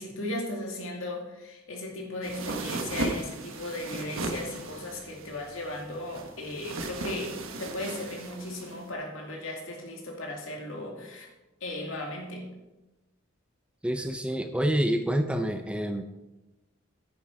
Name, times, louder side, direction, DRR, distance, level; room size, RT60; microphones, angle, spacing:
voice 1, 0.0-11.3 11.6-12.5, left 1 dB, 70° left, 1 dB, 2.4 m, -36 dB
sound 1, 2.2-8.9, right 2 dB, 75° right, 1.2 m, -36 dB
voice 2, 13.8-16.0, equal, 5° right, 7 dB, 0.4 m, -27 dB
9.8 x 9.7 x 4.6 m, 1.0 s
head